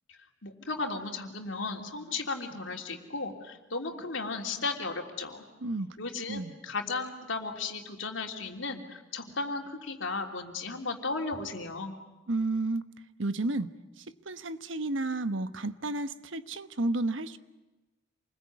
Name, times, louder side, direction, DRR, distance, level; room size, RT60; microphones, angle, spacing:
voice 1, 0.1-5.4 6.0-11.9, left 3 dB, 80° left, 3 dB, 3.3 m, -35 dB
voice 2, 5.6-6.0 6.3-6.5 12.3-12.8 13.2-13.7 14.0-17.4, right 2 dB, 85° right, 12 dB, 1.2 m, -31 dB
28.0 x 21.0 x 9.6 m, 1.1 s
head